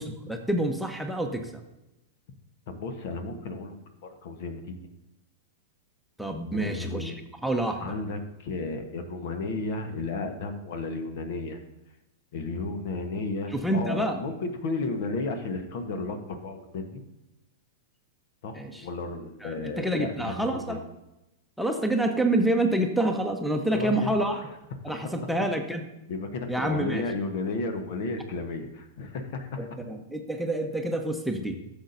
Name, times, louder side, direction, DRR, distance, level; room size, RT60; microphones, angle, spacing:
voice 1, 0.0-1.6 6.2-7.1 7.4-7.9 13.5-14.2 18.5-18.9 19.4-20.8 21.6-24.4 24.8-25.9 26.5-27.0 29.6-31.6, right 1 dB, ahead, 3 dB, 1.0 m, -27 dB
voice 2, 2.7-3.8 4.2-4.8 6.5-7.2 7.8-11.6 12.3-17.0 18.4-20.8 23.7-24.4 26.1-29.7, left 3 dB, 55° left, 7 dB, 1.2 m, -33 dB
15.5 x 7.0 x 2.7 m, 0.96 s
figure-of-eight pair, 100°, 0 cm